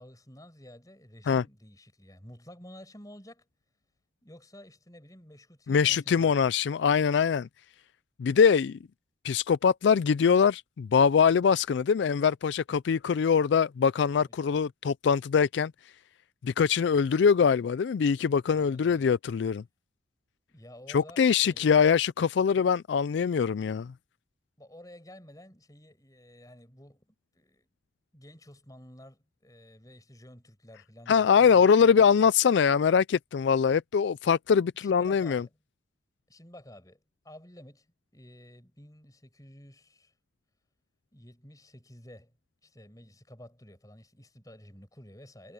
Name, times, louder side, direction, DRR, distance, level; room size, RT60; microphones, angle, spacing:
voice 1, 0.0-3.5 4.2-6.5 14.2-14.6 18.5-19.1 20.5-21.7 24.6-27.7 28.1-32.0 34.8-35.5 36.3-37.9 38.1-40.1 41.1-42.3 42.6-45.5, left 1 dB, 20° left, 6.2 m, -51 dB
voice 2, 5.7-7.5 8.2-8.8 9.2-15.7 16.4-19.6 20.9-23.9 31.1-35.4, left 6 dB, 65° left, 0.3 m, -23 dB
head